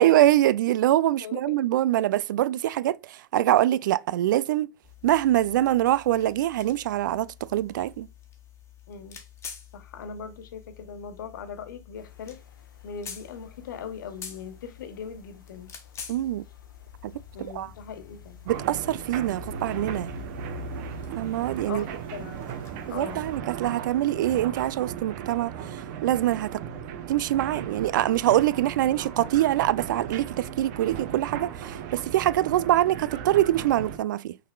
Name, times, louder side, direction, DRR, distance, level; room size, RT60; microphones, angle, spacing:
voice 1, 0.0-4.7 5.0-8.1 16.1-16.4 17.0-17.1 17.6-17.7 18.5-20.1 21.2-21.9 22.9-26.6 27.1-34.4, right 13 dB, 70° right, 0.4 m, -24 dB
voice 2, 1.2-1.6 8.9-9.2 9.7-12.4 12.8-15.7 17.3-18.4 21.7-22.4 22.9-23.3, left 6 dB, 75° left, 1.2 m, -40 dB
sound 1, 4.8-23.3, left 7 dB, 25° left, 1.5 m, -48 dB
sound 2, 12.0-23.4, left 2 dB, 90° left, 0.9 m, -46 dB
sound 3, 18.5-34.0, right 8 dB, 55° right, 0.8 m, -37 dB
6.0 x 3.9 x 2.2 m
hypercardioid pair, 100°, 11 cm